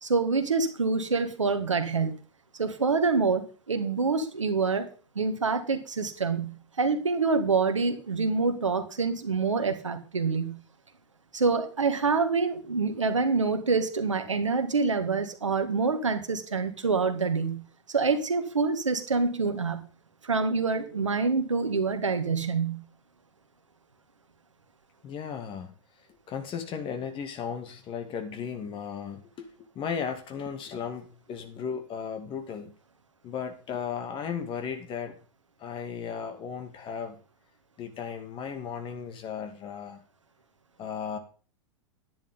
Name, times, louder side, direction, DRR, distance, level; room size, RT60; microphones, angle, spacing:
voice 1, 0.0-2.2 2.6-4.9 5.2-10.6 11.3-17.6 17.9-19.8 20.2-22.8, right 4 dB, 85° right, 7 dB, 1.9 m, -26 dB
voice 2, 25.0-25.7 26.3-29.5 29.7-32.7 33.2-35.2 35.6-37.2 37.8-40.0 40.8-41.2, left 7 dB, 35° left, 7 dB, 2.5 m, -35 dB
11.0 x 10.5 x 3.8 m, 0.38 s
hypercardioid pair, 100°, 15 cm